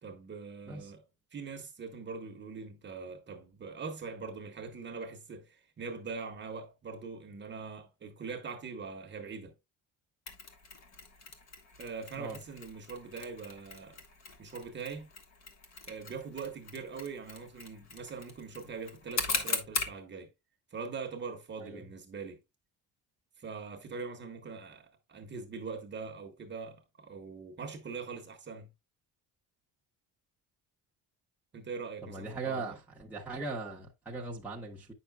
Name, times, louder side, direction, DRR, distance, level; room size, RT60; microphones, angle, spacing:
voice 1, 0.0-1.0 1.3-9.5 11.8-14.0 14.4-15.1 15.9-20.3 20.7-22.4 23.4-28.7 31.5-32.8, right 5 dB, 30° right, 1.0 m, -42 dB
Mechanisms, 10.3-20.0, left 4 dB, 45° left, 1.2 m, -40 dB
voice 2, 32.0-34.9, right 3 dB, 5° right, 0.9 m, -39 dB
8.5 x 5.7 x 2.2 m
cardioid pair, 165°, 38 cm